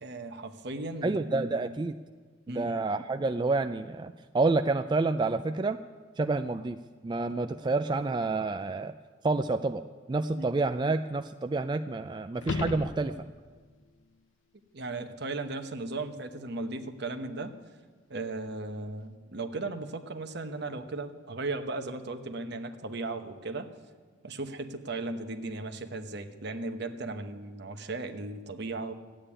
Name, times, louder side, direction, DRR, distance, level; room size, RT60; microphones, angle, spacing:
voice 1, 0.0-1.8 2.5-2.8 10.3-10.5 14.7-17.5 18.1-23.7 24.2-28.9, right 2 dB, 60° right, 8 dB, 1.1 m, -36 dB
voice 2, 1.0-1.9 2.5-5.8 6.2-6.8 7.0-8.9 9.2-9.8 10.1-13.1, right 3 dB, 25° right, 8 dB, 0.3 m, -28 dB
sound 1, 12.4-13.6 18.5-18.6, left 3 dB, 75° left, 0.6 m, -35 dB
14.0 x 8.9 x 10.0 m, 1.5 s
head